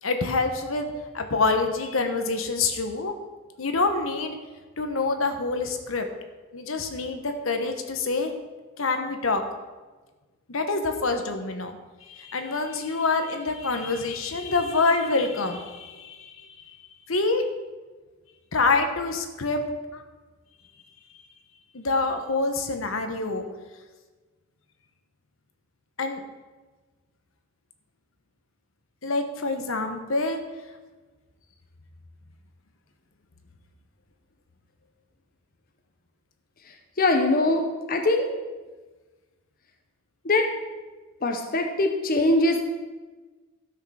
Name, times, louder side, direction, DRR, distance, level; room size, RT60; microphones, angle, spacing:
voice 1, 0.0-0.9 1.1-3.1 3.6-4.4 4.8-6.1 6.5-8.3 8.8-9.4 10.5-11.7 12.1-16.3 17.1-17.5 18.5-19.6 19.9-20.0 21.7-23.5 26.0-26.2 29.0-30.4, left 3 dB, 75° left, 6 dB, 1.2 m, -26 dB
voice 2, 37.0-38.3 40.2-40.5 41.2-42.6, left 2 dB, 45° left, 4 dB, 1.0 m, -22 dB
13.0 x 6.5 x 6.3 m, 1.3 s
head